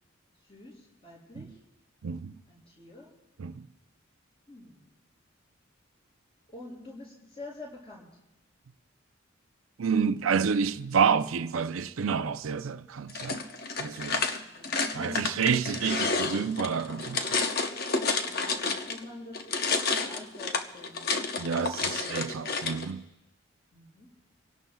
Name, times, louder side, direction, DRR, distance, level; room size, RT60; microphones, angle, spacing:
voice 1, 0.4-1.6 2.5-3.1 4.5-4.8 6.5-8.1 14.3-15.4 18.2-21.0 23.7-24.1, left 2 dB, 30° left, 6.4 m, -46 dB
voice 2, 2.0-2.3 3.4-3.7 9.8-13.4 13.8-14.3 14.9-17.4 21.4-23.0, right 6 dB, 85° right, 0.5 m, -29 dB
sound 1, 13.1-19.0 19.3-22.9, left 4 dB, 50° left, 0.9 m, -30 dB
27.0 x 17.5 x 2.3 m
head